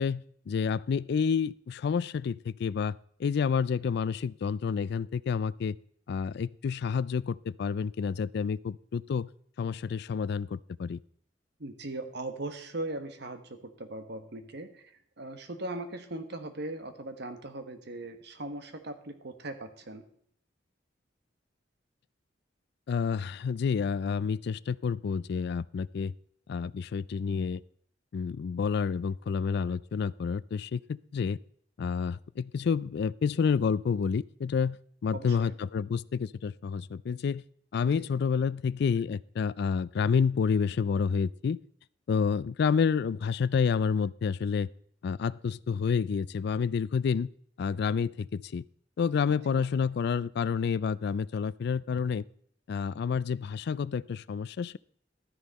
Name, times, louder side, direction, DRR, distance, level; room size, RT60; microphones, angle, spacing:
voice 1, 0.0-5.7 6.1-9.3 9.6-11.0 22.9-26.1 26.5-27.6 28.1-31.4 31.8-37.4 37.7-41.6 42.1-44.7 45.0-47.3 47.6-48.6 49.0-52.2 52.7-54.8, left 6 dB, 60° left, 20 dB, 0.3 m, -29 dB
voice 2, 11.6-20.1 35.1-35.5 37.9-38.0 49.5-49.7, right 2 dB, 65° right, 8 dB, 1.3 m, -39 dB
12.5 x 9.9 x 4.1 m, 0.62 s
head